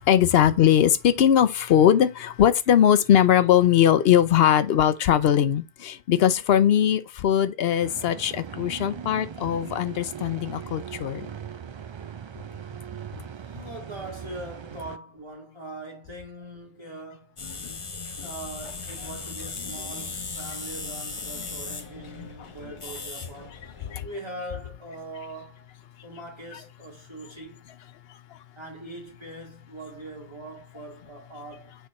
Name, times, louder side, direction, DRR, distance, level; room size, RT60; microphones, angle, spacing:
voice 1, 0.0-11.3 23.9-24.0, left 10 dB, 80° left, 0.8 m, -20 dB
sound 1, 7.8-15.0, right 8 dB, 50° right, 0.3 m, -39 dB
voice 2, 13.3-17.4 17.9-23.6 24.0-25.7 26.0-27.6 28.5-31.8, right 1 dB, 25° right, 1.5 m, -41 dB
sound 2, 17.4-24.0, left 4 dB, 35° left, 0.7 m, -37 dB
6.5 x 3.5 x 4.2 m
omnidirectional pair, 1.0 m